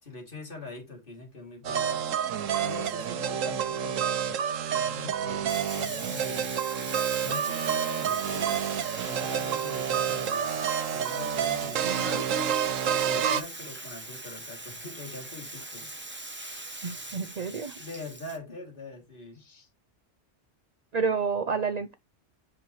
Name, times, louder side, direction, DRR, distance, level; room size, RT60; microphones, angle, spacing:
voice 1, 0.0-2.0 2.6-4.3 4.7-6.5 6.8-8.7 9.0-10.6 10.9-12.2 13.0-15.9 17.8-19.4, left 3 dB, 45° left, 3.1 m, -43 dB
sound 1, 1.6-13.4, right 8 dB, 90° right, 1.2 m, -29 dB
Bathtub (filling or washing), 5.5-18.4, right 2 dB, 10° right, 1.0 m, -41 dB
voice 2, 11.8-12.2 16.8-17.8 19.4-19.7 20.9-21.9, right 5 dB, 45° right, 0.5 m, -30 dB
7.7 x 5.8 x 3.2 m
omnidirectional pair, 1.3 m